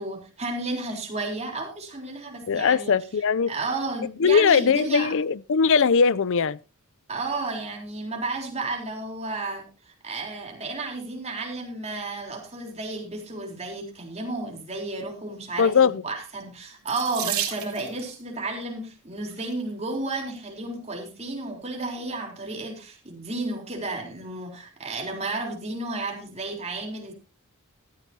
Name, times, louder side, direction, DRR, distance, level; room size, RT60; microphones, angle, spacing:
voice 1, 0.0-3.0 3.5-5.1 7.1-27.1, right 2 dB, 30° right, 3.8 m, -32 dB
voice 2, 2.5-3.5 4.2-6.6 15.6-16.0, left 6 dB, 60° left, 0.5 m, -20 dB
Water tap faucet / Sink (filling or washing), 16.8-18.1 19.1-19.5 20.2-20.3 20.7-20.8, right 10 dB, 80° right, 3.0 m, -32 dB
15.5 x 13.5 x 2.8 m
head